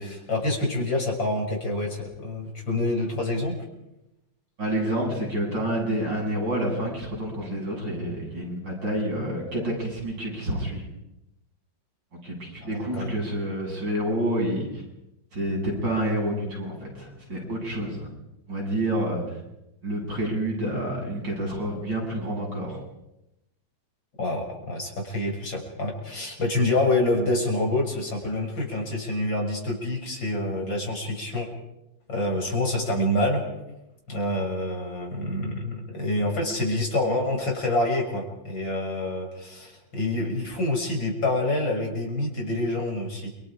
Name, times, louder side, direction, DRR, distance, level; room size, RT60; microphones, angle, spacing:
voice 1, 0.0-3.6 12.6-13.2 24.2-31.5 32.1-33.4 34.1-43.3, left 1 dB, 80° left, 1 dB, 7.1 m, -27 dB
voice 2, 4.6-10.8 12.2-14.8 15.3-18.1 18.5-19.4 19.8-22.8, right 1 dB, 70° right, -2 dB, 8.8 m, -28 dB
30.0 x 26.0 x 5.1 m, 0.90 s
omnidirectional pair, 2.0 m